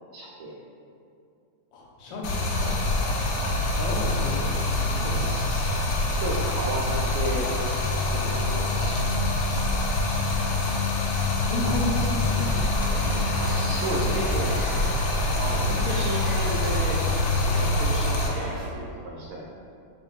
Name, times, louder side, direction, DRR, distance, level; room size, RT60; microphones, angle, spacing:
voice 1, 0.1-0.5 5.1-7.5 8.1-9.1 11.6-11.7 13.4-14.6 15.3-17.0 17.4-19.5, right 2 dB, 80° right, -5 dB, 1.4 m, -33 dB
voice 2, 1.7-3.0 3.5-5.3 11.4-13.2 15.4-15.5, left 1 dB, 70° left, -2 dB, 1.3 m, -33 dB
Stream, 2.2-18.3, left 2 dB, 90° left, 1.5 m, -25 dB
sound 1, 8.0-14.0, left 2 dB, 15° right, 0.8 m, -36 dB
sound 2, 12.3-18.7, right 1 dB, 40° right, 1.3 m, -39 dB
5.2 x 2.7 x 2.4 m, 2.5 s
omnidirectional pair, 2.3 m